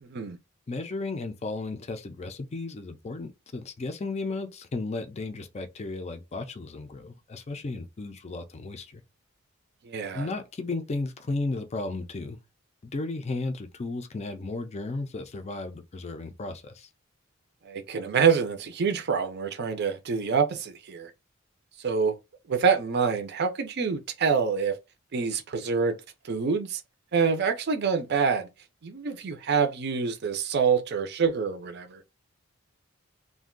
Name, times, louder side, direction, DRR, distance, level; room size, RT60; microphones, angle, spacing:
voice 1, 0.0-0.4 9.8-10.3 17.7-21.1 21.8-22.1 22.5-24.8 25.1-26.0 26.2-26.8 27.1-28.5 28.8-32.0, right 6 dB, 55° right, 0.5 m, -26 dB
voice 2, 0.7-9.0 10.1-12.4 12.9-16.9, left 3 dB, 30° left, 0.4 m, -34 dB
2.5 x 2.2 x 3.6 m
head